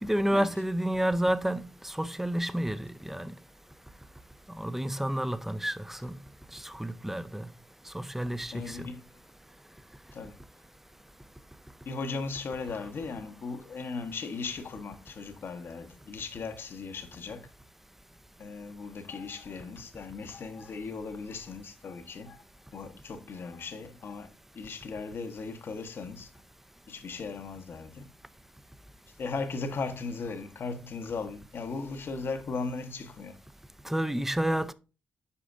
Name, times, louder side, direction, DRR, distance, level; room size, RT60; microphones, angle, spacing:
voice 1, 0.0-3.3 4.6-6.2 6.6-7.5 7.9-8.8 33.9-34.7, right 1 dB, 5° right, 0.5 m, -30 dB
voice 2, 8.5-9.0 10.1-10.4 11.8-17.5 18.4-22.4 22.7-26.3 26.9-28.1 29.2-33.4, left 4 dB, 60° left, 1.0 m, -37 dB
8.3 x 5.0 x 2.5 m
supercardioid pair, 55°, 4 cm